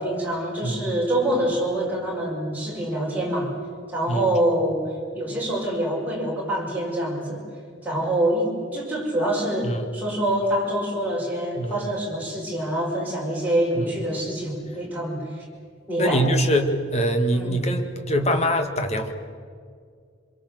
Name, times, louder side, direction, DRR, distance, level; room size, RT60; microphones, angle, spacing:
voice 1, 0.0-3.5 3.9-4.8 5.1-7.5 7.8-15.4 15.9-16.3 17.3-17.6, right 1 dB, 10° right, -3 dB, 5.9 m, -25 dB
voice 2, 16.0-19.1, equal, 35° left, 6 dB, 1.9 m, -23 dB
26.5 x 22.5 x 7.8 m, 2.1 s
head